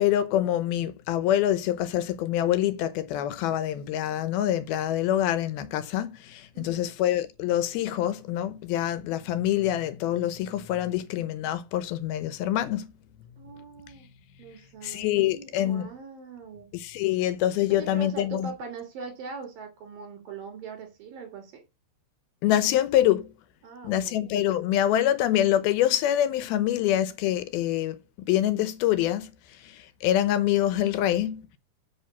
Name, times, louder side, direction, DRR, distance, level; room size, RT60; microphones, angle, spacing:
voice 1, 0.0-12.9 14.8-15.9 16.7-18.5 22.4-23.3 23.8-31.5, left 12 dB, 80° left, 2.7 m, -25 dB
voice 2, 6.5-6.9 13.4-14.1 14.4-16.7 17.7-21.6 23.6-24.2, right 5 dB, 65° right, 4.5 m, -41 dB
8.8 x 5.1 x 7.1 m
omnidirectional pair, 4.5 m